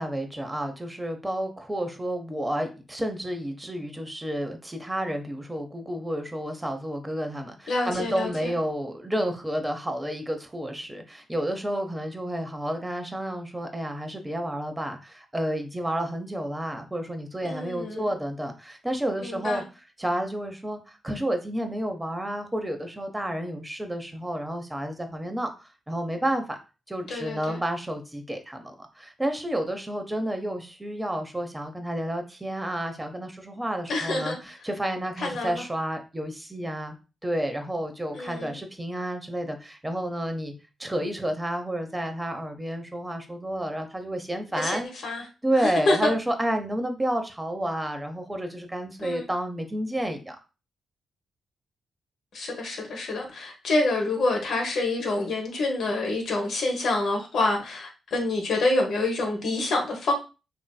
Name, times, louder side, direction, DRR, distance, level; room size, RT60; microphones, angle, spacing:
voice 1, 0.0-19.6 20.0-26.6 26.9-37.0 37.2-40.5 40.8-44.9 45.2-50.4, right 1 dB, 15° right, 0.7 m, -30 dB
voice 2, 7.7-8.5 17.4-18.1 19.2-19.6 27.1-27.6 33.9-34.4 35.2-35.6 38.1-38.6 44.5-45.2 45.6-46.1 49.0-49.2 52.3-60.1, left 2 dB, 70° left, 1.0 m, -27 dB
3.0 x 2.7 x 2.2 m
supercardioid pair, 45°, 0 cm